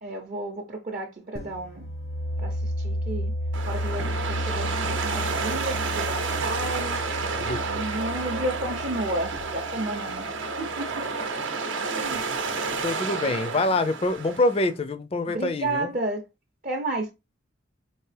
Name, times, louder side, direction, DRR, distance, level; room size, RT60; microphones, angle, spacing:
voice 1, 0.0-1.9 2.4-3.3 3.6-7.0 7.7-10.3 10.6-11.0 11.8-12.2 15.3-16.2 16.6-17.1, right 2 dB, 45° right, 0.6 m, -32 dB
sound 1, 1.3-10.9, equal, 90° left, 1.0 m, -33 dB
sound 2, 3.5-14.7, right 4 dB, 80° right, 0.7 m, -30 dB
voice 2, 12.8-15.9, left 2 dB, 30° left, 0.4 m, -25 dB
4.5 x 2.7 x 3.3 m
head